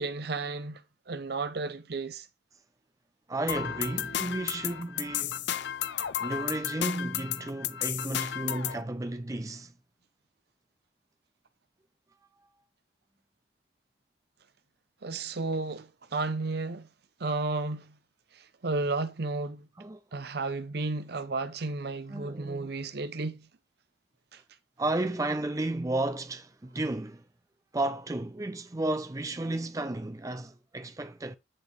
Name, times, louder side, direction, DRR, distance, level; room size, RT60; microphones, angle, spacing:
voice 1, 0.0-2.3 15.0-16.9 17.2-18.0 18.3-19.7 20.1-23.5 24.3-24.4, right 3 dB, 55° right, 0.7 m, -33 dB
voice 2, 3.3-5.4 6.2-9.7 19.8-20.0 22.1-22.7 24.8-27.2 27.7-31.3, right 2 dB, 15° right, 0.5 m, -33 dB
sound 1, 3.5-8.8, left 10 dB, 65° left, 0.5 m, -33 dB
8.7 x 4.3 x 3.2 m
head